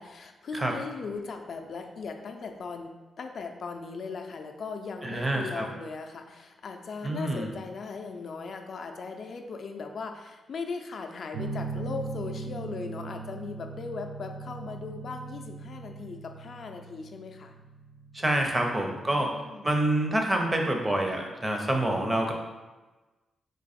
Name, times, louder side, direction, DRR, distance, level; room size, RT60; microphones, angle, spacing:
voice 1, 0.0-17.5 18.9-19.8, left 4 dB, 55° left, 4 dB, 0.4 m, -38 dB
voice 2, 5.0-5.7 7.0-7.5 18.1-19.3 19.6-22.3, right 1 dB, 20° right, 2 dB, 0.7 m, -27 dB
sound 1, 11.3-19.0, right 4 dB, 90° right, 0.4 m, -40 dB
3.8 x 3.0 x 4.2 m, 1.2 s
cardioid pair, 105°, 0 cm